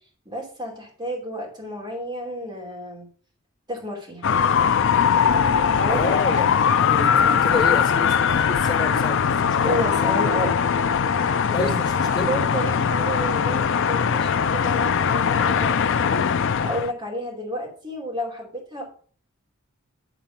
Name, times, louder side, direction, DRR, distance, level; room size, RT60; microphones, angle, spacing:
voice 1, 0.2-3.1 3.7-4.3 5.7-6.1 9.6-10.6 11.5-16.3 16.6-18.8, equal, 20° right, -1 dB, 3.0 m, -31 dB
sound 1, 4.2-16.9, left 7 dB, 65° left, 0.4 m, -21 dB
voice 2, 5.9-6.5 6.8-9.8 11.5-12.3, left 3 dB, 20° left, -3 dB, 3.0 m, -29 dB
10.5 x 4.1 x 5.7 m, 0.43 s
head